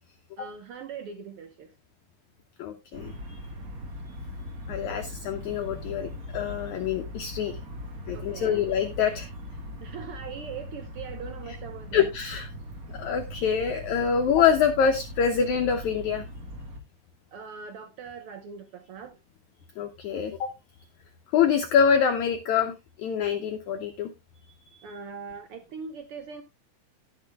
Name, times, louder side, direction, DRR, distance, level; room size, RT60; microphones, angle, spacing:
voice 1, 0.4-1.7 8.1-8.7 9.8-12.1 17.3-19.2 24.8-26.4, right 6 dB, 80° right, 1.2 m, -41 dB
voice 2, 2.6-3.1 4.7-7.5 8.1-9.3 11.9-12.5 12.9-16.2 19.8-20.5 21.3-22.7 23.0-24.1, left 7 dB, 70° left, 2.0 m, -25 dB
sound 1, 2.9-16.8, left 1 dB, 45° right, 1.2 m, -40 dB
18.0 x 6.1 x 2.3 m
omnidirectional pair, 4.1 m